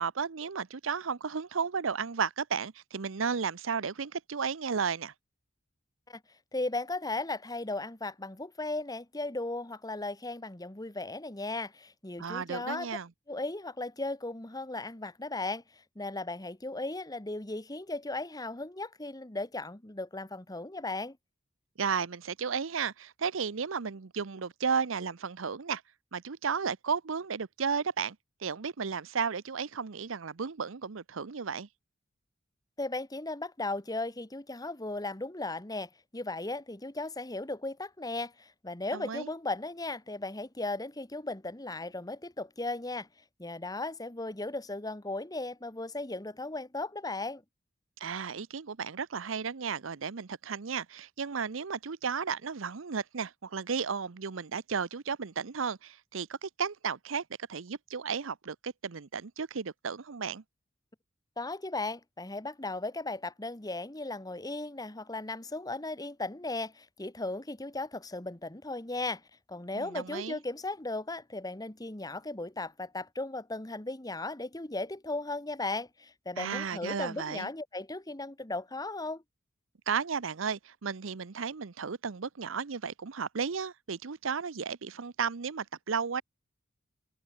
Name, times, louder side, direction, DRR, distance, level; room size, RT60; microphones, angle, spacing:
voice 1, 0.0-5.1 12.2-13.1 21.8-25.8 26.1-31.7 38.9-39.3 48.0-57.2 57.5-60.4 69.7-70.4 76.4-77.5 79.9-86.2, right 6 dB, 90° right, 0.7 m, -34 dB
voice 2, 6.5-12.9 13.3-15.6 15.9-21.2 32.8-43.1 43.4-47.4 61.4-69.2 69.5-79.2, left 2 dB, 20° left, 1.4 m, -36 dB
head